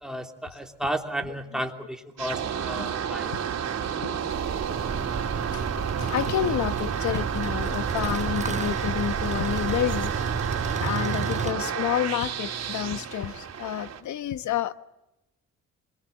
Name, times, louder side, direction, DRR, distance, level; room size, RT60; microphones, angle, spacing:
voice 1, 0.0-3.3, right 1 dB, ahead, 3.1 m, -33 dB
voice 2, 1.2-1.6 2.8-2.9 4.0-4.2 5.5-5.7 6.0-10.1 10.8-14.7, left 11 dB, 70° left, 1.3 m, -29 dB
sound 1, 2.2-14.0, right 8 dB, 55° right, 3.4 m, -31 dB
sound 2, 4.3-10.7, right 5 dB, 40° right, 1.6 m, -37 dB
sound 3, 4.7-11.5, right 5 dB, 25° right, 1.1 m, -33 dB
27.0 x 22.5 x 7.1 m
cardioid pair, 90°, 30 cm